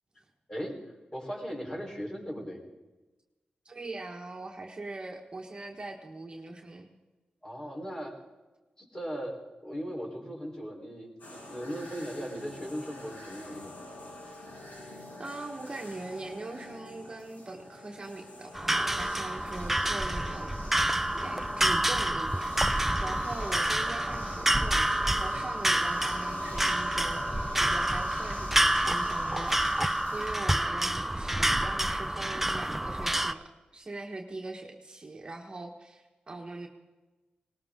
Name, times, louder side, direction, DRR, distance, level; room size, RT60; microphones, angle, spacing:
voice 1, 1.1-2.6 7.4-8.2 8.8-13.7, equal, 20° left, -1 dB, 4.1 m, -38 dB
voice 2, 3.6-6.9 15.2-20.5 21.1-36.7, right 2 dB, 30° right, 2 dB, 1.5 m, -41 dB
sound 1, 11.2-30.4, left 1 dB, 75° left, 7.4 m, -46 dB
sound 2, 18.5-33.3, right 1 dB, 10° right, 0.6 m, -28 dB
19.5 x 19.5 x 3.8 m, 1.2 s
wide cardioid pair, 100°, 3 cm